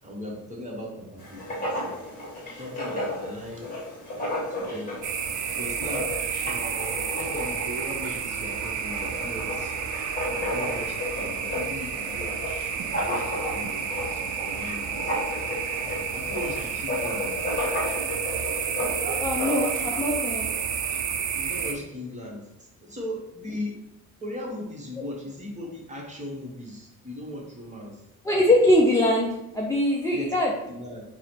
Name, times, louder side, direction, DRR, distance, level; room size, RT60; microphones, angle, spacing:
voice 1, 0.0-1.9 2.6-3.7 4.5-5.0 5.6-6.1 6.4-9.8 10.3-12.4 12.8-15.2 15.7-17.5 21.3-23.8 24.2-28.0 30.1-30.3 30.7-31.0, left 1 dB, 20° right, -1 dB, 0.8 m, -38 dB
Writing, 1.2-20.0, left 1 dB, 25° left, 1.2 m, -33 dB
sound 1, 5.0-21.7, right 7 dB, 60° right, 0.5 m, -30 dB
voice 2, 19.2-20.4 28.2-30.5, left 1 dB, 10° left, -2 dB, 0.3 m, -22 dB
4.6 x 2.0 x 4.3 m, 0.87 s
cardioid pair, 165°, 33 cm